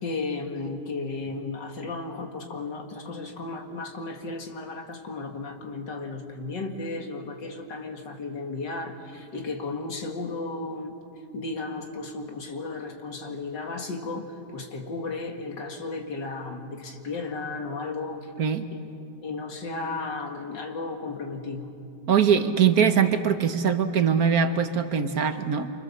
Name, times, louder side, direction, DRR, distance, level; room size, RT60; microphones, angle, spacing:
voice 1, 0.0-11.0 11.3-18.3 18.7-18.8 19.2-21.7, left 3 dB, 85° left, 3 dB, 2.7 m, -34 dB
voice 2, 22.1-25.7, right 7 dB, 60° right, 8 dB, 1.5 m, -22 dB
28.0 x 25.5 x 7.2 m, 2.6 s
omnidirectional pair, 1.9 m